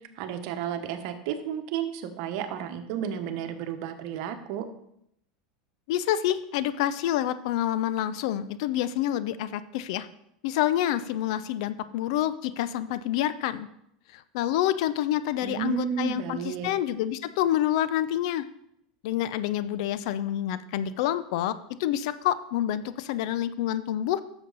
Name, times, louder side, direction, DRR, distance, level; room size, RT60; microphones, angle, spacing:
voice 1, 0.2-4.7 15.4-16.7, right 8 dB, 65° right, 8 dB, 1.1 m, -32 dB
voice 2, 5.9-10.1 10.4-13.7 14.1-18.4 19.0-21.5 21.8-24.2, left 12 dB, 70° left, 14 dB, 0.6 m, -27 dB
10.5 x 7.1 x 4.1 m, 0.75 s
hypercardioid pair, 105°, 3 cm